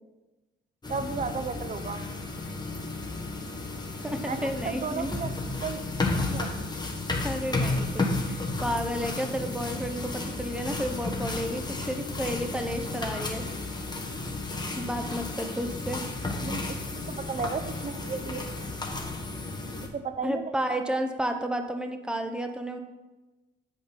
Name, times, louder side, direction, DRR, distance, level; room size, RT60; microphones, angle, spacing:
sound 1, 0.8-19.9, left 2 dB, 20° left, 1.3 m, -33 dB
voice 1, 0.9-2.0 4.3-5.8 6.3-6.7 16.4-16.6 17.1-18.7 19.9-20.8, right 5 dB, 40° right, 10 dB, 0.8 m, -34 dB
voice 2, 4.0-5.1 7.2-13.5 14.8-16.0 20.2-22.8, equal, 5° right, 6 dB, 0.9 m, -32 dB
7.8 x 5.2 x 5.4 m, 1.1 s
cardioid pair, 90°, 20 cm